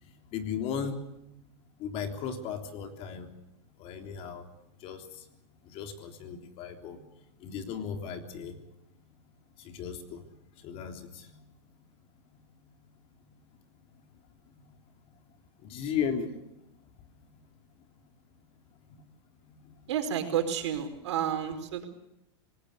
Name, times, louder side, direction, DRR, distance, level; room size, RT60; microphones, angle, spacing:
voice 1, 0.3-1.0 1.8-3.3 3.8-4.4 4.8-5.0 5.7-7.0 7.4-8.5 9.6-10.2 10.6-11.4 15.6-16.3 18.9-19.0 19.5-19.7, left 7 dB, 40° left, 6 dB, 3.5 m, -36 dB
voice 2, 19.9-21.8, right 9 dB, 75° right, 7 dB, 4.7 m, -30 dB
26.0 x 19.5 x 6.8 m, 0.83 s
supercardioid pair, 135°, 15 cm